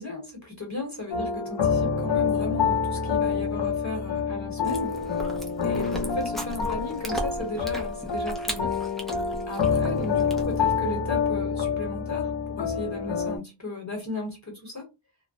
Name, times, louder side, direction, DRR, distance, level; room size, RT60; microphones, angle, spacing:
voice 1, 0.0-5.0 5.6-8.7 9.5-14.9, left 2 dB, 40° left, 1 dB, 1.0 m, -35 dB
sound 1, 1.1-13.4, left 6 dB, 70° left, 0.6 m, -27 dB
Chewing mastication, 4.6-10.8, equal, ahead, 0.5 m, -37 dB
2.3 x 2.0 x 2.6 m, 0.25 s
wide cardioid pair, 45°, 44 cm